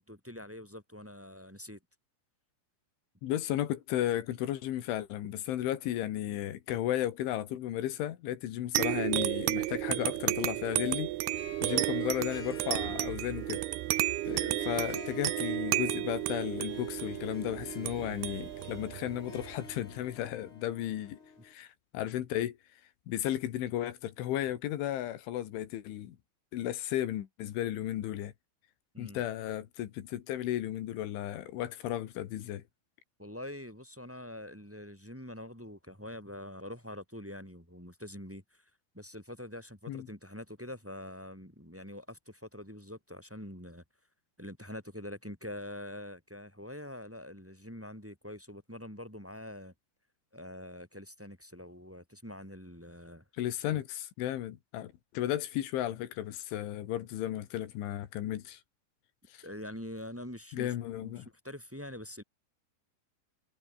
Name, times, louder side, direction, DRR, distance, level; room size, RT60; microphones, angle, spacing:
voice 1, 0.1-1.8 28.9-29.2 33.2-38.7 38.9-43.8 44.4-49.7 50.3-53.2 53.6-53.8 59.4-60.7 61.0-62.2, left 1 dB, 5° right, 5.6 m, -45 dB
voice 2, 3.2-11.1 11.6-13.6 14.3-21.2 21.4-22.6 23.1-26.2 26.5-28.3 29.0-32.6 39.9-40.1 53.4-58.6 59.3-59.4 60.5-61.3, left 12 dB, 80° left, 4.2 m, -34 dB
sound 1, 8.8-19.8, right 17 dB, 75° right, 2.4 m, -33 dB
Harp, 11.2-21.5, left 4 dB, 30° left, 4.1 m, -50 dB
omnidirectional pair, 5.4 m